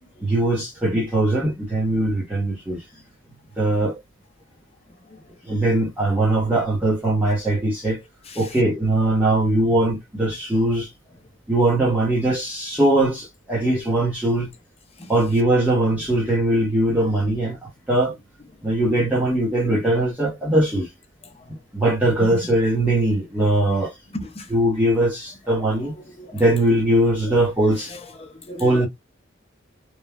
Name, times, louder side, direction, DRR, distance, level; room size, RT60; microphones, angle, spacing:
voice 1, 0.2-2.8 3.6-4.0 5.5-8.0 8.4-10.9 11.5-14.5 15.1-18.1 18.6-20.9 21.7-23.9 24.5-25.9 26.3-27.9 28.6-28.9, right 1 dB, 10° right, 0.9 m, -21 dB
voice 2, 24.1-24.5 26.0-26.4 27.3-27.4 27.9-28.9, left 1 dB, 30° left, 0.6 m, -36 dB
3.0 x 2.3 x 2.2 m
head